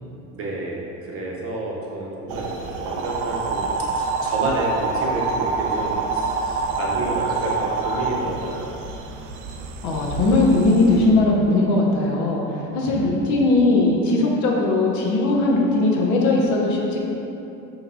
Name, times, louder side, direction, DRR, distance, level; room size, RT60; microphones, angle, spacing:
voice 1, 0.3-3.7 3.9-8.7, right 2 dB, 40° right, -4 dB, 0.9 m, -29 dB
sound 1, 2.3-11.1, right 4 dB, 80° right, 0.5 m, -27 dB
voice 2, 9.8-12.4 12.7-17.0, left 2 dB, 55° left, -2 dB, 0.8 m, -19 dB
5.5 x 2.9 x 2.6 m, 2.9 s
supercardioid pair, 90°, 35 cm